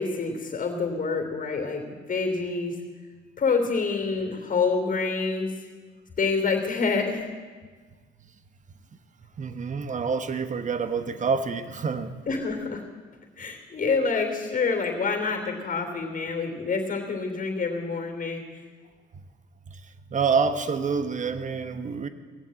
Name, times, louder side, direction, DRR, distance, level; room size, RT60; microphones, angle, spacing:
voice 1, 0.0-2.7 3.4-5.5 6.2-7.3 12.3-12.8 13.4-18.4, left 4 dB, 40° left, 4 dB, 3.2 m, -27 dB
voice 2, 9.4-12.2 19.7-19.8 20.1-22.1, right 5 dB, 40° right, 10 dB, 1.2 m, -27 dB
17.5 x 7.3 x 8.8 m, 1.4 s
supercardioid pair, 80°, 20 cm